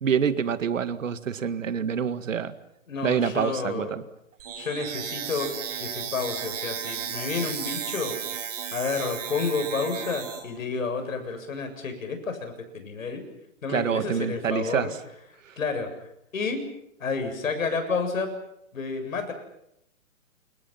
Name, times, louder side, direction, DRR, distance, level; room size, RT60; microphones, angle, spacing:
voice 1, 0.0-2.5 3.0-4.0 13.7-15.0 15.5-15.6, right 7 dB, 65° right, 11 dB, 2.1 m, -26 dB
voice 2, 2.9-3.9 4.5-8.2 8.7-13.2 13.6-14.9 15.6-15.9 16.3-16.7 17.0-18.3 18.7-19.3, left 4 dB, 70° left, 6 dB, 7.9 m, -30 dB
sound 1, 4.4-10.4, right 8 dB, 30° right, 5.5 m, -34 dB
29.0 x 29.0 x 5.9 m, 0.79 s
hypercardioid pair, 180°, 41 cm